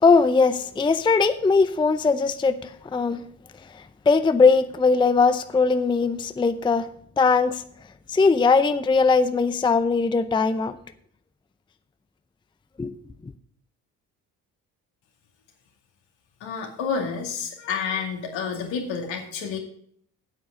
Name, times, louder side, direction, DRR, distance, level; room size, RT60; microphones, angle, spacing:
voice 1, 0.0-3.2 4.1-6.9 7.2-7.6 8.1-10.8 12.8-13.0, left 4 dB, 10° left, 11 dB, 0.5 m, -20 dB
voice 2, 16.4-19.6, left 6 dB, 70° left, 2 dB, 2.4 m, -29 dB
8.9 x 7.8 x 5.1 m, 0.64 s
hypercardioid pair, 55°, 46 cm